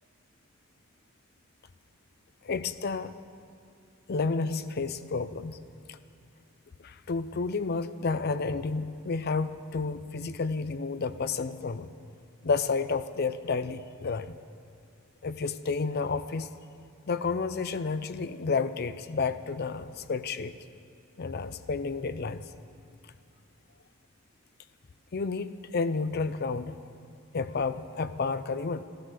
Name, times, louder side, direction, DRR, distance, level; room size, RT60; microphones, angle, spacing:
voice 1, 2.4-3.1 4.1-5.6 5.9-6.0 6.8-11.9 12.4-14.4 15.2-16.5 17.1-20.5 21.2-22.4 25.1-26.8 27.3-28.8, left 4 dB, 50° left, 12 dB, 0.5 m, -31 dB
14.0 x 13.5 x 6.7 m, 2.5 s
head